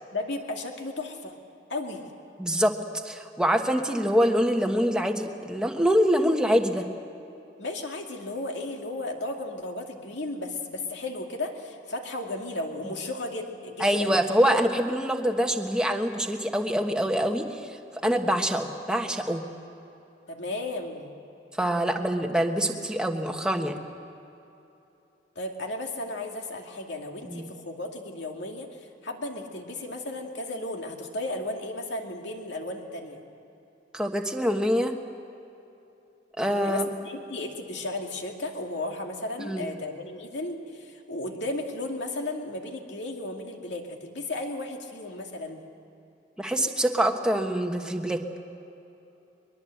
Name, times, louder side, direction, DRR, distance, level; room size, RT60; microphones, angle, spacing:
voice 1, 0.1-1.4 1.7-2.1 7.6-14.2 20.3-21.1 25.4-28.7 29.0-33.2 36.6-45.7, left 2 dB, 65° left, 2 dB, 2.4 m, -34 dB
voice 2, 2.4-2.7 3.0-6.9 12.8-12.9 13.8-17.8 18.0-19.4 21.6-23.7 27.2-27.5 33.9-34.9 36.4-36.9 39.4-39.7 46.4-48.4, equal, 5° right, 3 dB, 1.3 m, -25 dB
22.5 x 22.0 x 7.9 m, 2.9 s
head